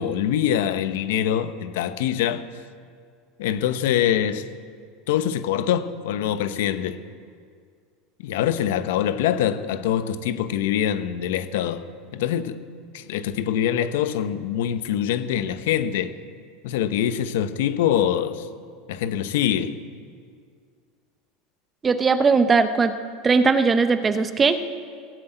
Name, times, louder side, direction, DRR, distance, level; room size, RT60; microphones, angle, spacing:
voice 1, 0.0-2.4 3.4-4.4 5.1-7.0 8.2-11.9 12.1-12.6 12.9-16.1 16.6-18.5 18.9-19.8, left 10 dB, 80° left, 0.8 m, -24 dB
voice 2, 21.8-22.9 23.2-24.6, right 4 dB, 15° right, 0.7 m, -19 dB
17.0 x 7.7 x 9.1 m
supercardioid pair, 160°, 0 cm